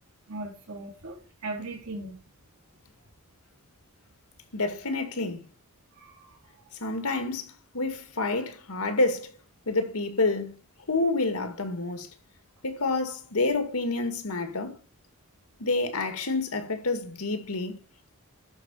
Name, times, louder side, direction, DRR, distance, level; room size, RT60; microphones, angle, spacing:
voice 1, 0.3-2.2 6.0-6.4, right 2 dB, 85° right, 3.9 m, -38 dB
voice 2, 4.5-5.4 6.8-7.5 7.7-9.3 9.7-10.6 10.9-12.1 12.6-14.8 15.6-17.8, left 3 dB, 85° left, 2.1 m, -28 dB
12.5 x 5.0 x 7.0 m
head